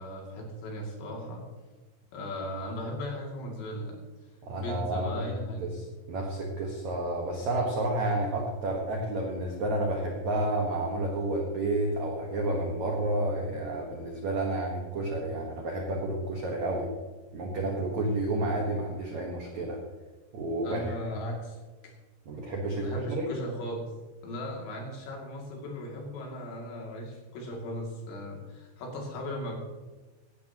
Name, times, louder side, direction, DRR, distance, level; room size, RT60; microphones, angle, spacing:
voice 1, 0.0-1.4 2.1-4.0 4.6-5.6 20.6-21.6 21.8-21.9 22.8-23.9 24.2-29.5, left 1 dB, 65° left, -1 dB, 4.6 m, -37 dB
voice 2, 4.4-5.2 5.6-16.9 17.3-19.8 20.3-20.9 22.2-23.3, right 1 dB, 80° right, 0 dB, 1.6 m, -30 dB
17.0 x 13.0 x 3.0 m, 1.2 s
omnidirectional pair, 5.7 m